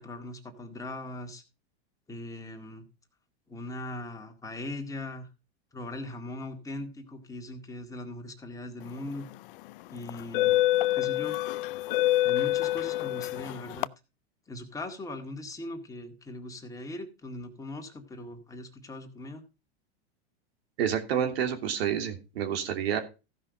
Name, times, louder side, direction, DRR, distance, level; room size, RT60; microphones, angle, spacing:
voice 1, 0.0-1.4 2.1-2.8 3.5-5.3 5.7-9.3 9.9-10.6 10.9-11.4 12.2-13.9 14.5-19.4, left 2 dB, 10° left, 3 dB, 1.9 m, -40 dB
sound 1, 9.1-9.3 10.1-13.9, left 16 dB, 55° left, 0.5 m, -26 dB
voice 2, 20.8-23.0, right 9 dB, 70° right, 7 dB, 3.0 m, -29 dB
15.0 x 5.7 x 5.2 m, 0.30 s
supercardioid pair, 140°, 32 cm